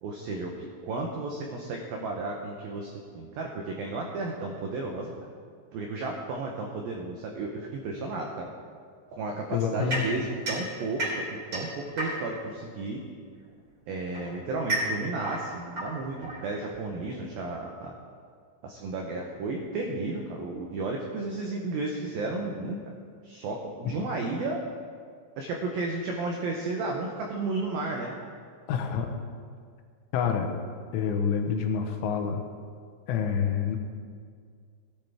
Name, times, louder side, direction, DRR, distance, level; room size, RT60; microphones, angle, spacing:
voice 1, 0.0-5.1 5.7-8.5 9.1-13.0 13.9-17.9 18.6-22.8 23.2-24.6 25.4-28.2, right 3 dB, 90° right, 1 dB, 2.0 m, -33 dB
voice 2, 9.5-10.1 28.7-29.2 30.1-30.5 30.9-32.4 33.1-33.8, left 7 dB, 90° left, 4 dB, 3.4 m, -27 dB
sound 1, 9.9-12.5 13.5-16.9, right 1 dB, 25° right, 3.1 m, -33 dB
17.0 x 10.5 x 3.5 m, 2.1 s
omnidirectional pair, 5.5 m